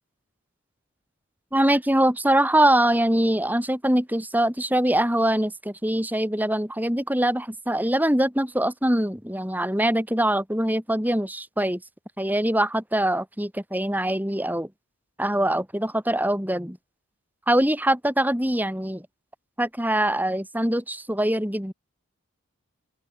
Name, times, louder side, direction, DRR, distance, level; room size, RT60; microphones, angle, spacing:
voice 1, 1.5-11.8 12.2-14.7 15.2-16.8 17.5-19.1 19.6-21.7, right 1 dB, 10° right, 5.4 m, -23 dB
open air
head